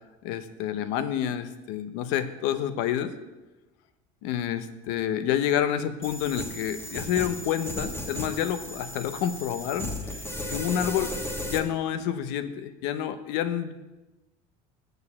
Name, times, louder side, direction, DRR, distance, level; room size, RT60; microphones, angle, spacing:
voice 1, 0.2-3.1 4.2-10.2 10.5-11.1 11.5-13.7, left 10 dB, 75° left, 11 dB, 0.8 m, -28 dB
sound 1, 6.0-11.6, left 1 dB, 15° left, 1.3 m, -35 dB
6.8 x 6.6 x 7.2 m, 1.1 s
supercardioid pair, 115°, 18 cm